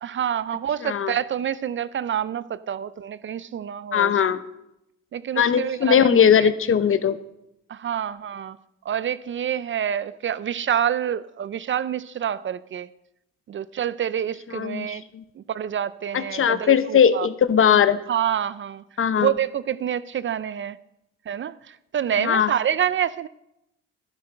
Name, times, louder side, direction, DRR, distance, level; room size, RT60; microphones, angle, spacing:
voice 1, 0.0-4.1 5.1-6.5 7.7-8.6 8.9-12.9 13.5-15.0 15.4-17.3 18.1-18.8 19.2-20.8 21.3-23.3, right 9 dB, 40° right, 0.4 m, -27 dB
voice 2, 0.8-1.1 3.9-4.4 5.4-7.2 14.5-15.2 16.1-18.0 19.0-19.3 22.2-22.5, left 8 dB, 45° left, 0.7 m, -19 dB
11.5 x 10.5 x 4.5 m
cardioid pair, 90°, 30 cm